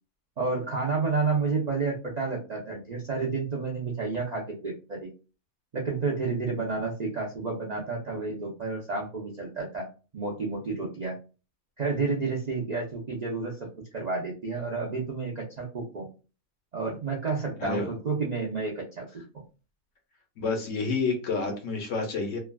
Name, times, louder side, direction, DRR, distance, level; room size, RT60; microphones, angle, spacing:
voice 1, 0.4-5.1 5.7-9.9 10.1-11.2 11.8-13.7 13.9-16.1 16.7-19.0, right 4 dB, 75° right, -2 dB, 0.4 m, -30 dB
voice 2, 20.4-22.4, left 4 dB, 65° left, 3 dB, 0.9 m, -29 dB
3.2 x 2.3 x 2.2 m, 0.33 s
omnidirectional pair, 1.6 m